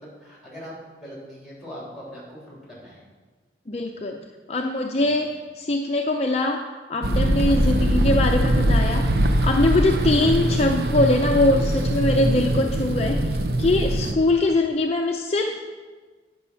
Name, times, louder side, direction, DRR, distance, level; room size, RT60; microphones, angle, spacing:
voice 1, 0.0-3.0 5.1-5.2, equal, ahead, -6 dB, 3.5 m, -41 dB
voice 2, 3.7-9.1 9.4-15.6, left 2 dB, 35° left, 3 dB, 0.5 m, -22 dB
sound 1, 7.0-14.1, right 1 dB, 60° right, 0.7 m, -22 dB
9.7 x 6.1 x 5.6 m, 1.4 s
head